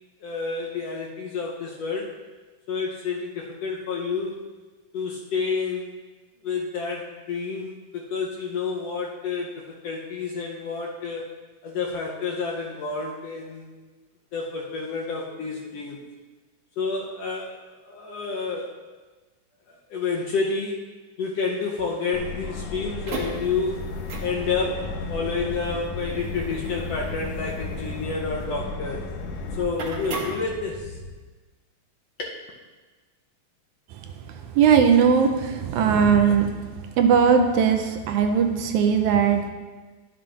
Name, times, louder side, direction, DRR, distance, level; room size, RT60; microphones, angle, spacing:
voice 1, 0.2-2.1 2.7-4.4 4.9-5.9 6.4-11.2 11.6-13.7 14.3-16.0 16.8-17.5 17.9-18.7 19.7-20.8 21.2-23.8 24.2-29.0 29.6-30.9 32.2-32.4, left 4 dB, 70° left, -2 dB, 1.6 m, -29 dB
Subway metro underground, 22.1-29.6, left 4 dB, 90° left, 2.3 m, -35 dB
sound 1, 22.8-31.1, right 1 dB, 60° right, 1.8 m, -36 dB
voice 2, 34.5-36.5 37.0-39.5, right 7 dB, 85° right, 5 dB, 2.0 m, -19 dB
12.0 x 7.5 x 2.5 m, 1.3 s
omnidirectional pair, 3.5 m